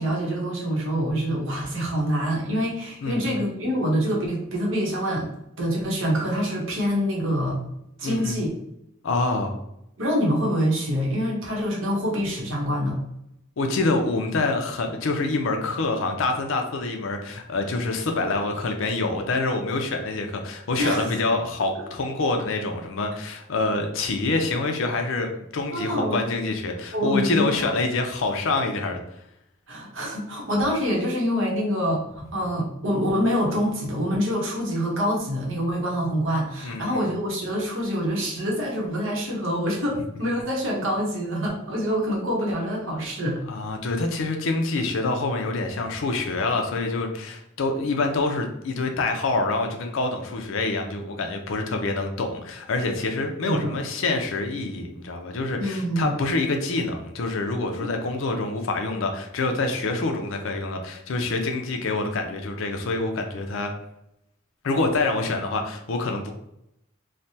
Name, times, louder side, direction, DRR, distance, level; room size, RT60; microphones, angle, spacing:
voice 1, 0.0-7.6 8.0-8.5 10.0-13.0 20.8-21.1 25.7-26.3 26.9-27.7 29.7-43.4 53.4-53.7 55.5-56.1 57.8-57.9, equal, 75° right, -2 dB, 0.9 m, -26 dB
voice 2, 3.0-3.3 8.0-8.4 9.0-9.6 13.6-29.0 36.6-37.1 43.5-63.7 64.6-66.3, left 3 dB, 80° left, 4 dB, 0.5 m, -26 dB
3.2 x 2.1 x 2.7 m, 0.82 s
head